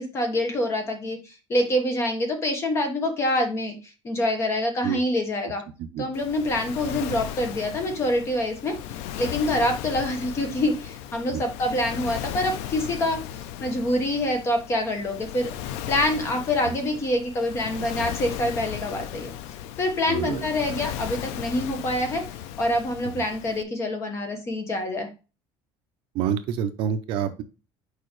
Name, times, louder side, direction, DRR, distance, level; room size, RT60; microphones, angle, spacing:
voice 1, 0.0-3.8 4.0-5.6 6.0-8.8 9.2-13.2 13.6-15.5 15.9-19.3 19.8-22.2 22.6-25.1, left 1 dB, 25° left, 5 dB, 1.1 m, -26 dB
Waves surf, 6.1-23.6, left 11 dB, 75° left, 0.5 m, -36 dB
voice 2, 20.1-20.4 23.0-23.2 26.1-27.4, right 8 dB, 50° right, 9 dB, 0.6 m, -28 dB
6.5 x 4.7 x 3.1 m, 0.31 s
cardioid pair, 180°, 11 cm